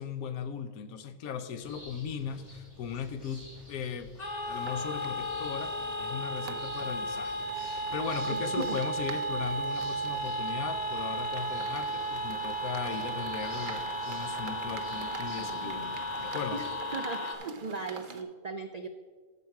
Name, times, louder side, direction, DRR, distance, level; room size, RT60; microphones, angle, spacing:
voice 1, 0.0-4.1 4.4-16.6, left 7 dB, 85° left, 10 dB, 1.2 m, -38 dB
sound 1, 1.6-16.8, equal, 55° left, 3.6 m, -51 dB
sound 2, 4.2-17.3, right 1 dB, 30° left, 1.2 m, -34 dB
sound 3, 4.5-18.2, right 5 dB, 45° right, 0.7 m, -46 dB
voice 2, 16.9-18.9, right 4 dB, 85° right, 6 dB, 0.3 m, -37 dB
11.0 x 7.1 x 4.6 m, 1.5 s
omnidirectional pair, 1.5 m